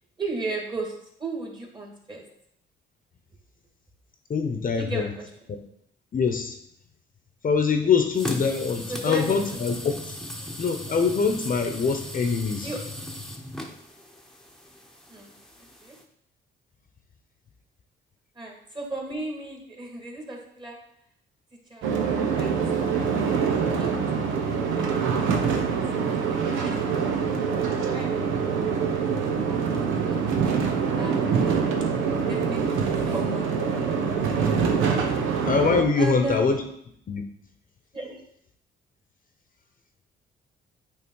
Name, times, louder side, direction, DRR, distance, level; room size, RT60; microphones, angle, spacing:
voice 1, 0.2-0.9 1.2-2.2 4.8-5.3 7.8-7.9 8.9-9.6 12.6-12.8 15.1-15.3 15.8-16.0 18.3-20.8 21.7-21.9 22.4-22.5 22.9-23.2 23.5-25.3 25.5-29.2 29.5-29.8 30.0-34.5 36.0-36.7 37.9-38.2, right 2 dB, 25° right, 0 dB, 2.1 m, -37 dB
voice 2, 4.3-5.1 6.1-6.5 7.4-10.1 10.6-12.7 35.5-36.6 37.1-37.2, left 5 dB, 45° left, 5 dB, 0.9 m, -24 dB
sound 1, 8.1-16.0, left 1 dB, ahead, 1.0 m, -38 dB
sound 2, 21.8-35.8, right 6 dB, 90° right, 1.0 m, -25 dB
8.6 x 3.4 x 4.8 m, 0.71 s
cardioid pair, 90°, 20 cm